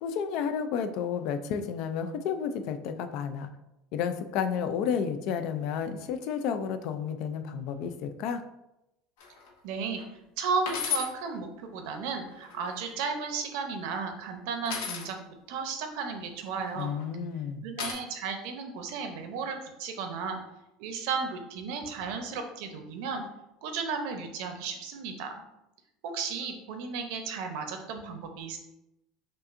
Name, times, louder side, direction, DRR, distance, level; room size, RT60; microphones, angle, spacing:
voice 1, 0.0-3.5 3.9-8.4 16.8-17.6, left 7 dB, 55° left, 9 dB, 0.3 m, -31 dB
sound 1, 9.2-9.5 10.0-10.1 10.7-11.1 12.3-12.9 14.6-15.1 16.6-17.0 17.8-17.9, left 7 dB, 85° left, 0.9 m, -34 dB
voice 2, 9.6-10.0 10.4-15.2 15.5-17.0 17.6-20.4 20.8-23.2 23.6-25.3 26.0-28.6, right 5 dB, 65° right, 5 dB, 0.6 m, -34 dB
5.3 x 2.5 x 2.5 m, 0.89 s
cardioid pair, 160°, 0 cm